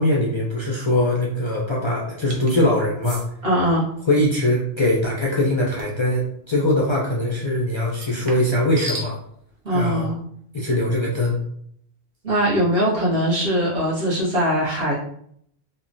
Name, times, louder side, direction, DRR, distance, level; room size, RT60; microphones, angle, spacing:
voice 1, 0.0-3.2 4.1-9.2 9.7-10.0 10.5-11.4, left 1 dB, 50° left, -4 dB, 0.3 m, -21 dB
sound 1, 2.3-2.6 3.0-3.3 5.8-6.0 7.9-9.1, equal, 45° right, 0.5 m, -34 dB
voice 2, 3.4-3.9 9.6-10.2 12.2-15.0, equal, 65° right, -6 dB, 1.1 m, -21 dB
3.0 x 2.1 x 2.5 m, 0.66 s
omnidirectional pair, 1.1 m